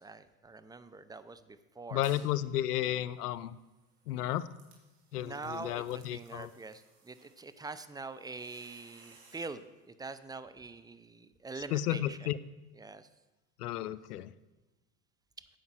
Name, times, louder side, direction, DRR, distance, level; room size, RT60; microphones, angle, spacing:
voice 1, 0.0-2.0 5.1-12.3 12.8-13.1, right 3 dB, 10° right, 13 dB, 0.5 m, -44 dB
voice 2, 1.9-3.5 4.1-4.5 5.1-6.5 11.7-12.4 13.6-14.3, left 13 dB, 85° left, 16 dB, 0.6 m, -33 dB
sound 1, 2.0-2.4 2.8-9.6, right 4 dB, 80° right, 2.6 m, -62 dB
9.3 x 6.5 x 6.1 m, 1.1 s
hypercardioid pair, 80°, 45 cm